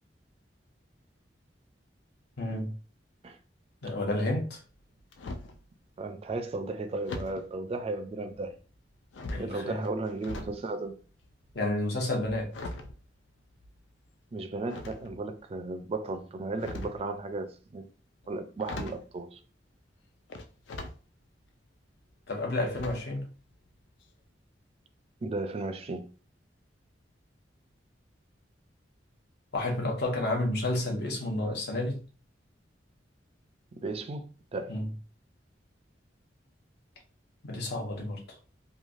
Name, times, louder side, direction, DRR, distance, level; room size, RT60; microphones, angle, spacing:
voice 1, 2.4-2.7 3.8-4.6 9.3-9.8 11.5-12.5 22.3-23.3 29.5-32.0 34.7-34.9 37.4-38.2, left 1 dB, 65° left, 0.9 m, -30 dB
sound 1, 4.7-5.6 7.1-7.5 8.3-8.8 9.1-10.6 10.9-13.9 14.7-15.4 16.4-17.1 18.2-18.3 18.6-19.1 20.3-21.0 21.5-21.6 22.7-23.2 23.5-23.7 24.0-24.1, left 2 dB, 80° left, 0.4 m, -41 dB
voice 2, 6.0-8.6 9.4-10.9 14.3-17.9 18.3-19.4 25.2-26.1 33.8-34.2 34.5-34.8, right 2 dB, 35° right, 0.4 m, -35 dB
3.1 x 2.3 x 2.4 m
head